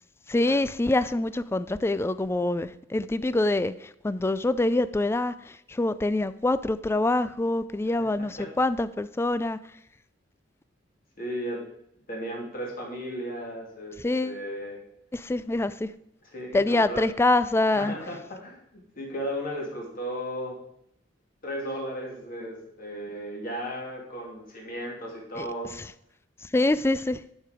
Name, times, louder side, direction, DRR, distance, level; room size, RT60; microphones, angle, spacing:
voice 1, 0.3-9.6 14.0-14.4 15.1-15.9 16.5-18.0 25.4-25.9 26.4-27.2, left 2 dB, 15° left, 0.3 m, -25 dB
voice 2, 11.2-11.6 12.1-14.8 16.3-17.0 17.7-20.6 21.4-25.7, equal, 50° left, 2.5 m, -35 dB
11.5 x 4.6 x 4.9 m
head